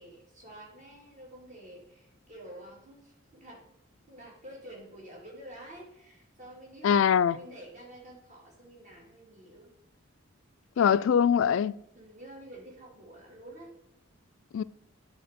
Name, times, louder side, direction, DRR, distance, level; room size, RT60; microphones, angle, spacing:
voice 1, 0.0-3.6 4.1-7.0 7.3-9.7 10.8-11.2 11.9-13.8, right 1 dB, 35° right, 2.5 m, -49 dB
voice 2, 6.8-7.4 10.8-11.7 14.5-14.6, left 8 dB, 70° left, 0.3 m, -22 dB
9.9 x 4.3 x 5.2 m
head